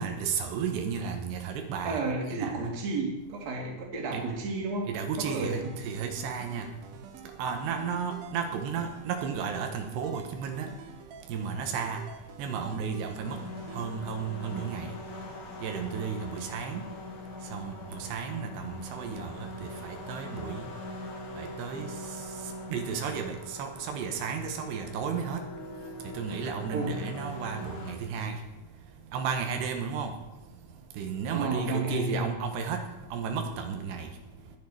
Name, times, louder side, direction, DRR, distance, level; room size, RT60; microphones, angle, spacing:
voice 1, 0.0-2.0 2.3-2.7 4.1-4.2 4.9-6.7 7.4-10.7 11.3-12.0 12.4-13.4 13.7-15.0 15.6-16.9 17.4-20.7 21.4-21.9 22.7-28.4 29.1-30.1 31.0-32.8 33.1-34.1, right 6 dB, 90° right, 4 dB, 3.4 m, -33 dB
voice 2, 1.8-4.9 5.2-5.7 26.7-26.9 31.3-32.2, right 2 dB, 45° right, 0 dB, 3.1 m, -32 dB
sound 1, 5.4-13.9, right 7 dB, 70° right, 2.6 m, -48 dB
sound 2, 13.2-27.9, left 1 dB, 50° left, 1.6 m, -42 dB
20.0 x 7.2 x 4.7 m, 1.0 s
omnidirectional pair, 4.8 m